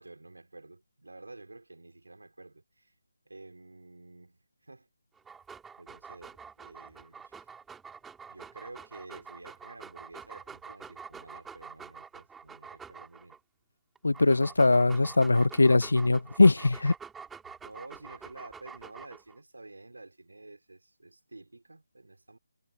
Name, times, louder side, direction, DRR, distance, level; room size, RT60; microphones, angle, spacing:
voice 1, 0.0-2.9 3.2-4.9 5.8-7.5 8.3-13.4 17.6-22.4, right 2 dB, 85° right, 4.6 m, -50 dB
Dog, 5.2-13.4 14.0-19.4, right 6 dB, 5° right, 4.3 m, -47 dB
voice 2, 14.0-16.9, left 2 dB, 80° left, 0.8 m, -21 dB
figure-of-eight pair, 155°, 0 cm